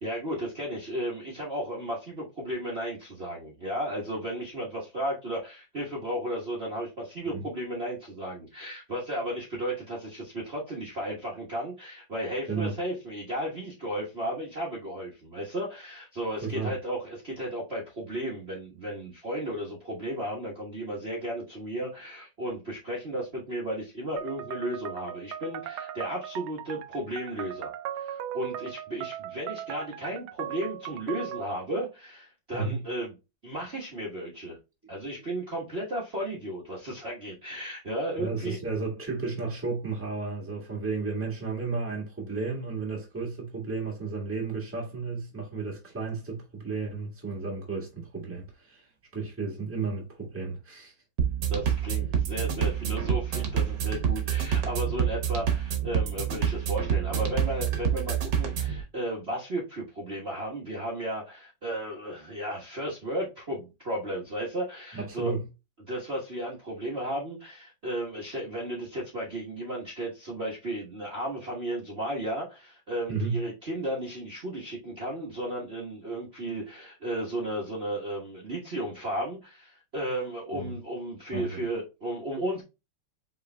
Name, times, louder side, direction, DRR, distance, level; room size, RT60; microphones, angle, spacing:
voice 1, 0.0-33.1 33.4-34.6 34.9-38.6 51.5-65.3 65.9-82.6, right 1 dB, 35° right, 1.3 m, -34 dB
voice 2, 16.4-16.7 32.5-32.8 38.2-50.9 64.9-65.5 73.1-73.4 80.5-80.7 81.3-81.6, right 4 dB, 5° right, 1.4 m, -33 dB
sound 1, 24.2-31.6, right 11 dB, 80° right, 1.4 m, -38 dB
sound 2, 51.2-58.8, right 8 dB, 60° right, 1.7 m, -27 dB
5.4 x 4.2 x 2.2 m
omnidirectional pair, 2.4 m